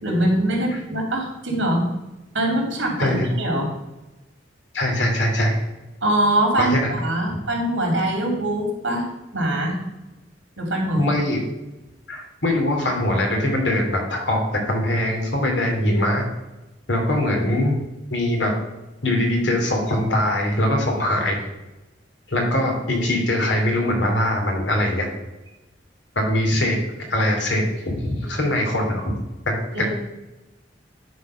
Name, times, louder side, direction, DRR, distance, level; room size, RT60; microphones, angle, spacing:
voice 1, 0.0-1.8 2.3-3.7 6.0-9.1 9.3-9.8 10.6-11.0 29.7-29.9, right 1 dB, 85° right, 0 dB, 2.9 m, -23 dB
voice 2, 3.0-3.3 4.7-5.6 6.6-6.9 11.0-11.4 12.1-16.3 16.9-17.8 18.1-18.5 19.0-21.4 22.3-25.1 26.1-29.2 29.6-29.9, left 1 dB, 70° left, 0 dB, 2.6 m, -22 dB
11.0 x 4.4 x 5.5 m, 1.0 s
head